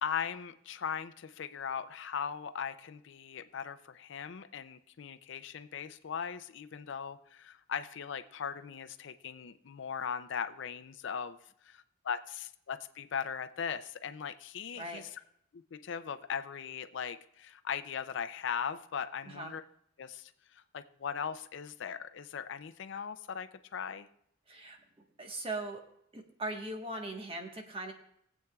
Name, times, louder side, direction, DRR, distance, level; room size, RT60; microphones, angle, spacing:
voice 1, 0.0-11.4 11.6-15.0 15.5-19.6 20.0-24.1, left 7 dB, 65° left, 10 dB, 0.4 m, -39 dB
voice 2, 24.5-24.8 25.2-25.8 26.1-27.9, right 2 dB, 30° right, 3 dB, 1.3 m, -39 dB
21.5 x 8.0 x 2.3 m, 0.71 s
head